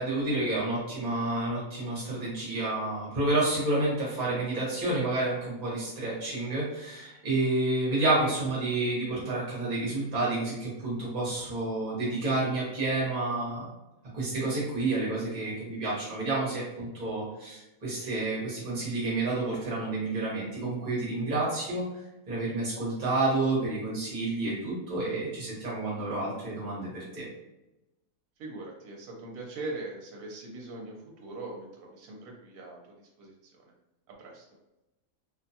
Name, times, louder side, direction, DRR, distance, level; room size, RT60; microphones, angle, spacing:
voice 1, 0.0-13.6 14.1-21.8 22.3-27.2, right 2 dB, 35° right, -6 dB, 1.0 m, -29 dB
voice 2, 28.4-33.7 34.1-34.5, right 2 dB, 75° right, -1 dB, 1.0 m, -41 dB
2.6 x 2.2 x 2.7 m, 0.98 s
omnidirectional pair, 1.6 m